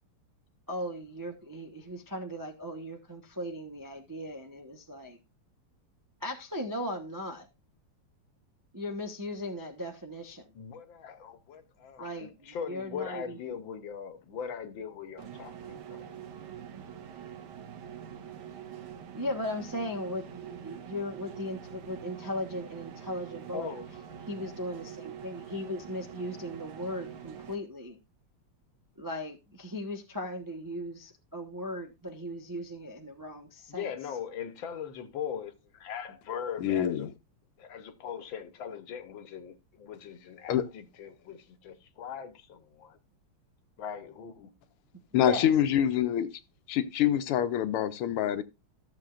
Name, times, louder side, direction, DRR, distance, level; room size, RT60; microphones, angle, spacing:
voice 1, 0.7-5.2 6.2-7.5 8.7-10.5 12.0-13.4 19.1-23.7 24.3-28.0 29.0-33.9 45.1-45.5, left 1 dB, 25° right, 0.4 m, -37 dB
voice 2, 10.5-16.0 23.5-23.9 33.7-37.1 37.6-43.0 43.8-44.5 45.2-45.5, left 7 dB, 65° left, 1.7 m, -40 dB
sound 1, 15.2-27.6, right 9 dB, 75° right, 2.1 m, -45 dB
voice 3, 36.6-37.1 40.5-40.6 45.1-46.3 46.7-48.4, left 10 dB, 80° left, 1.7 m, -26 dB
14.0 x 7.4 x 2.4 m
omnidirectional pair, 2.4 m